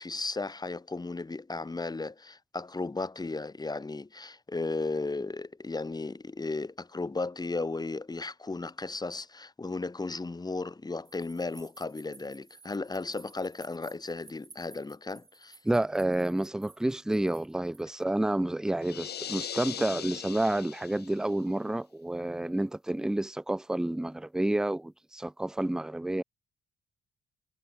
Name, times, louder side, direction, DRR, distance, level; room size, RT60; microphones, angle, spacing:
voice 1, 0.0-15.6, left 3 dB, 20° left, 2.4 m, -35 dB
sound 1, 11.1-18.0, right 4 dB, 30° right, 3.7 m, -56 dB
voice 2, 15.6-26.2, right 1 dB, 5° right, 0.5 m, -29 dB
sound 2, 18.8-21.3, left 9 dB, 55° left, 1.3 m, -39 dB
cardioid pair, 90°, 20 cm